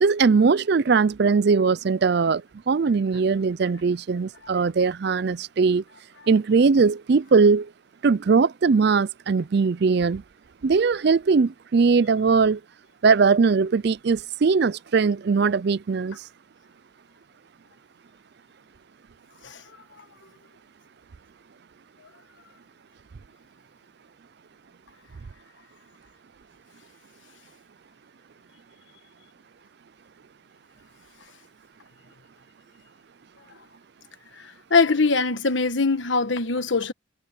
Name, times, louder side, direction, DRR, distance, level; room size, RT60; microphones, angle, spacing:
voice 1, 0.0-5.8 6.3-7.7 8.0-10.2 10.6-12.6 13.0-16.2, right 4 dB, 50° right, 0.4 m, -20 dB
voice 2, 34.7-36.9, left 4 dB, 65° left, 1.4 m, -22 dB
head